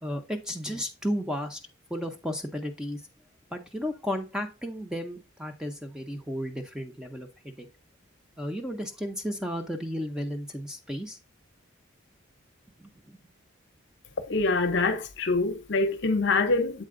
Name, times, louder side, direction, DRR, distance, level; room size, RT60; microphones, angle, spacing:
voice 1, 0.0-1.6 1.9-3.0 3.5-7.7 8.4-11.2 12.8-13.2, equal, 5° right, 0.6 m, -33 dB
voice 2, 14.3-16.8, left 3 dB, 55° left, 0.7 m, -25 dB
7.6 x 4.2 x 3.7 m
head